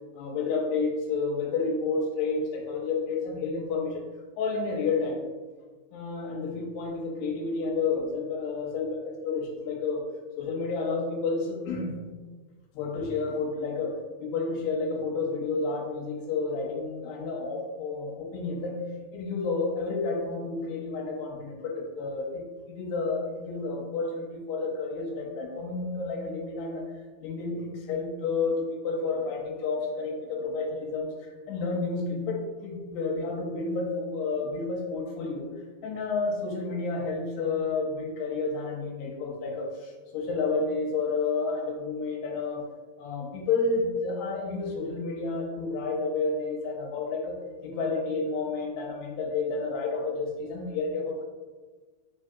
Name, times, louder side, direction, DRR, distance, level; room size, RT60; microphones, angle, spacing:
voice 1, 0.1-4.1 4.4-5.3 5.9-10.0 10.4-12.0 12.7-18.9 19.1-26.9 27.2-35.5 35.8-42.7 43.0-51.2, left 4 dB, 85° left, -1 dB, 2.7 m, -30 dB
5.8 x 3.6 x 2.3 m, 1.4 s
omnidirectional pair, 4.8 m